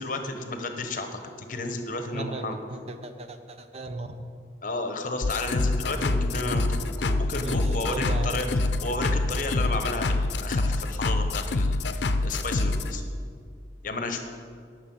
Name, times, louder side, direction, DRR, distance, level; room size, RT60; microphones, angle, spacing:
voice 1, 0.0-2.6 4.6-13.0 13.8-14.2, left 2 dB, 50° left, 6 dB, 1.0 m, -32 dB
voice 2, 2.1-4.3 7.4-8.7, right 2 dB, 35° right, 8 dB, 0.6 m, -37 dB
sound 1, 5.2-12.9, left 2 dB, 80° left, 0.6 m, -26 dB
11.0 x 6.3 x 7.7 m, 2.1 s
head